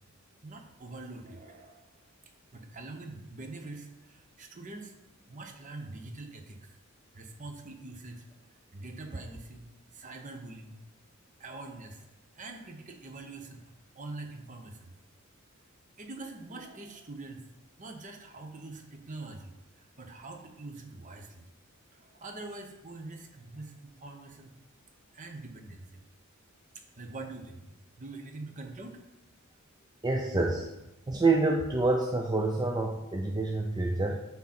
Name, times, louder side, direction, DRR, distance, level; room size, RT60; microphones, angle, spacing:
voice 1, 0.4-1.9 2.5-5.0 5.3-6.8 7.1-8.3 8.7-10.8 11.4-12.1 12.3-15.0 16.0-17.4 17.8-21.5 21.9-24.5 25.1-26.0 27.0-29.0, right 2 dB, 35° right, 4 dB, 0.9 m, -44 dB
voice 2, 30.0-30.7 31.1-34.2, right 3 dB, 20° right, 1 dB, 0.5 m, -27 dB
9.7 x 3.7 x 4.3 m, 0.92 s
head